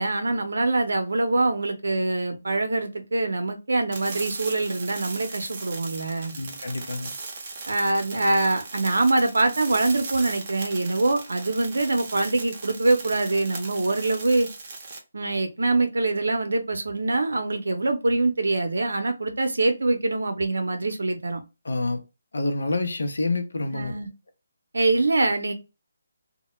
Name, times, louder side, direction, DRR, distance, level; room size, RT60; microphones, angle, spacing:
voice 1, 0.0-6.3 7.7-14.5 15.1-21.4 23.7-24.1 24.7-25.5, right 2 dB, 85° right, 0.6 m, -24 dB
sound 1, 3.9-15.0, right 3 dB, 35° right, 0.6 m, -38 dB
voice 2, 6.4-7.1 21.6-22.0 22.3-23.9, left 2 dB, 80° left, 0.6 m, -27 dB
2.2 x 2.1 x 3.0 m
hypercardioid pair, 165°, 0 cm